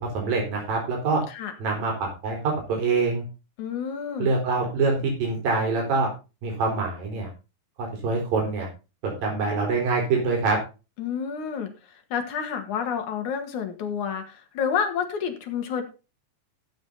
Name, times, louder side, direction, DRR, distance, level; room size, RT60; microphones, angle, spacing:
voice 1, 0.0-1.2 1.6-2.4 2.7-3.2 4.2-6.1 6.4-7.3 7.8-8.7 9.0-10.6, right 4 dB, 80° right, 0 dB, 6.4 m, -25 dB
voice 2, 3.6-4.3 11.0-15.8, left 7 dB, 60° left, 6 dB, 3.1 m, -29 dB
14.0 x 8.2 x 4.1 m, 0.30 s
omnidirectional pair, 4.0 m